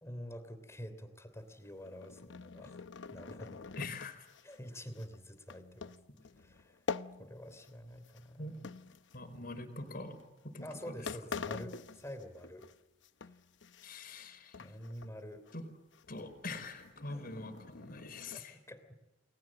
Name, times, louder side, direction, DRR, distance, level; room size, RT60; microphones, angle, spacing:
voice 1, 0.0-2.8 3.1-3.7 4.4-5.9 6.4-6.8 7.2-8.7 10.6-12.7 14.6-15.4 17.1-17.2 18.3-19.0, equal, 15° left, 10 dB, 3.2 m, -47 dB
sound 1, 1.7-7.8 8.0-9.5 10.2-10.4 10.8-10.9 11.1-12.7 13.0-14.3 14.5-15.1 15.5-15.6 15.9-18.4, left 4 dB, 85° left, 0.8 m, -46 dB
voice 2, 3.8-4.3 8.4-8.6 9.1-10.2 10.4-11.1 13.8-14.6 15.5-15.7 16.1-18.6, left 2 dB, 55° left, 7 dB, 4.7 m, -44 dB
30.0 x 21.0 x 7.8 m, 1.1 s
head